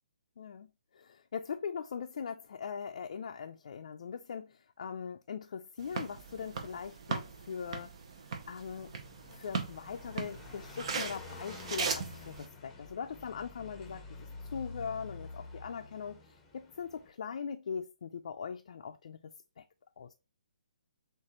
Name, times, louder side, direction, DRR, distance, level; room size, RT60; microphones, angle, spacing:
voice 1, 0.4-0.7 0.9-7.9 8.5-8.9 9.3-19.6 20.0-20.1, left 6 dB, 60° left, 0.4 m, -41 dB
sound 1, 5.8-12.4, right 5 dB, 50° right, 0.9 m, -39 dB
Car passing by, 8.7-17.1, left 3 dB, 10° left, 0.8 m, -49 dB
6.5 x 2.6 x 3.0 m
hypercardioid pair, 155°, 4 cm